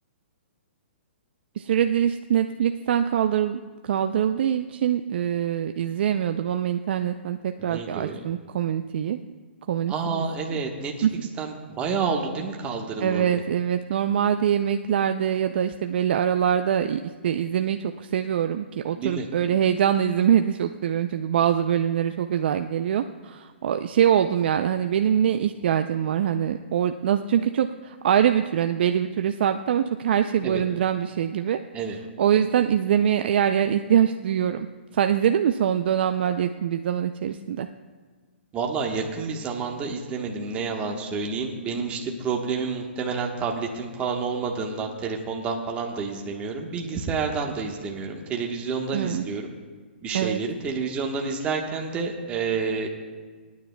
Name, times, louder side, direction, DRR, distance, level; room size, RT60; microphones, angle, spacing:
voice 1, 1.6-9.2 9.7-10.2 10.5-10.6 11.0-11.1 13.0-31.6 32.2-34.7 34.9-37.7 48.9-49.2 50.1-50.4, right 9 dB, 60° right, 7 dB, 0.4 m, -24 dB
voice 2, 7.6-8.2 9.9-11.1 11.4-13.3 19.0-19.3 30.4-30.6 31.7-32.0 38.5-49.5 50.0-52.9, right 5 dB, 20° right, 1 dB, 1.2 m, -29 dB
27.5 x 9.5 x 2.2 m, 1.5 s
hypercardioid pair, 150°, 6 cm